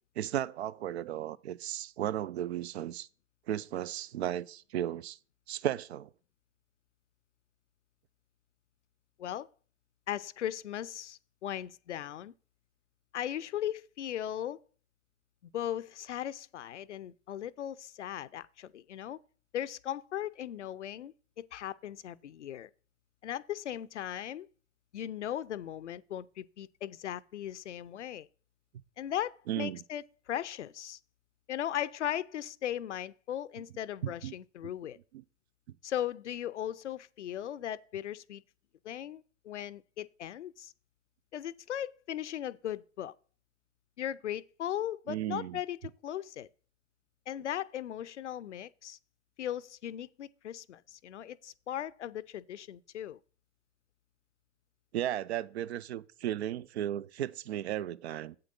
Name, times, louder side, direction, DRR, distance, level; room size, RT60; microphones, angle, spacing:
voice 1, 0.2-3.1 3.5-5.2 5.5-6.1 29.5-29.8 34.0-34.3 45.1-45.6 54.9-58.4, right 12 dB, 60° right, 0.6 m, -35 dB
voice 2, 10.1-12.3 13.1-14.6 15.4-19.2 19.5-22.7 23.2-24.5 24.9-28.3 29.0-31.0 31.5-35.0 35.8-38.4 38.8-40.7 41.3-43.1 44.0-46.5 47.3-49.0 49.4-53.2, left 11 dB, 75° left, 0.6 m, -38 dB
8.2 x 7.7 x 3.8 m
figure-of-eight pair, 90°, 36 cm